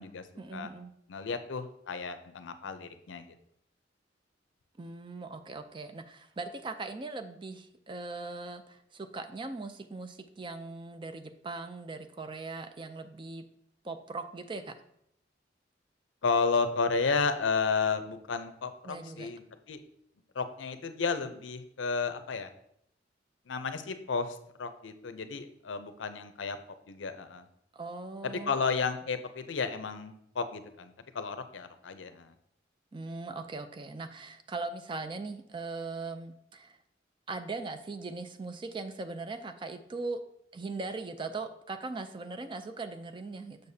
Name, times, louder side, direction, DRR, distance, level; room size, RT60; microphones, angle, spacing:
voice 1, 0.4-0.9 4.8-13.4 13.8-14.7 18.8-19.3 27.7-28.6 32.9-36.8 37.3-40.2 40.5-43.6, right 3 dB, 25° right, 8 dB, 0.4 m, -40 dB
voice 2, 1.1-3.3 16.2-19.8 20.3-22.5 23.5-26.6 26.9-27.4 28.2-32.3, left 4 dB, 85° left, 10 dB, 0.6 m, -32 dB
6.7 x 6.4 x 2.7 m, 0.73 s
head